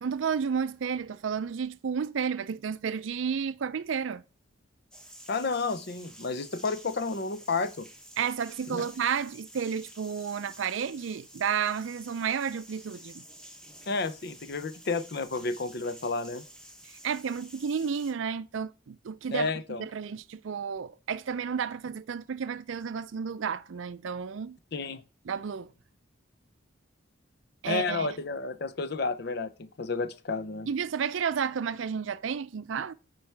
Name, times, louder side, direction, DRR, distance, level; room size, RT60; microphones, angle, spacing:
voice 1, 0.0-4.2 8.2-13.2 16.9-19.5 19.8-24.6 25.3-25.7 27.6-28.1 30.7-32.9, right 7 dB, 70° right, 0.4 m, -32 dB
sound 1, 4.9-18.1, equal, 5° left, 1.0 m, -50 dB
voice 2, 5.3-7.9 8.7-8.8 13.9-16.4 19.3-19.8 24.7-25.0 27.7-30.7, left 4 dB, 50° left, 0.6 m, -31 dB
8.7 x 4.7 x 3.3 m
head